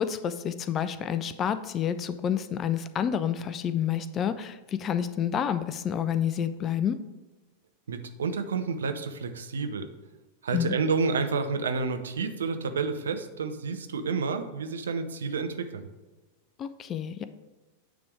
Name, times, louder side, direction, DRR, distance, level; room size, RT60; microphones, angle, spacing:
voice 1, 0.0-7.0 10.5-10.7 16.6-17.2, left 8 dB, 30° left, 12 dB, 0.4 m, -29 dB
voice 2, 7.9-9.9 10.4-15.9, right 4 dB, 65° right, 8 dB, 0.6 m, -30 dB
9.4 x 3.4 x 4.7 m, 1.2 s
figure-of-eight pair, 90°, 0 cm